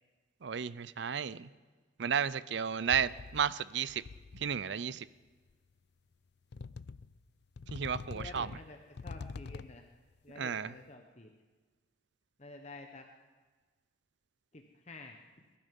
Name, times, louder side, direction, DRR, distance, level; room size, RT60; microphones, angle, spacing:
voice 1, 0.4-1.5 2.0-4.0 4.3-5.1 7.7-8.5 10.4-10.7, right 7 dB, 65° right, 18 dB, 0.5 m, -33 dB
sound 1, 2.9-3.6 3.9-4.6 5.5-5.6 6.5-7.2 7.6-9.9, left 4 dB, 60° left, 0.4 m, -45 dB
voice 2, 8.1-9.8 10.2-11.3 12.4-13.1 14.5-15.2, left 2 dB, 35° left, 3 dB, 1.0 m, -50 dB
21.5 x 12.5 x 5.4 m, 1.4 s
head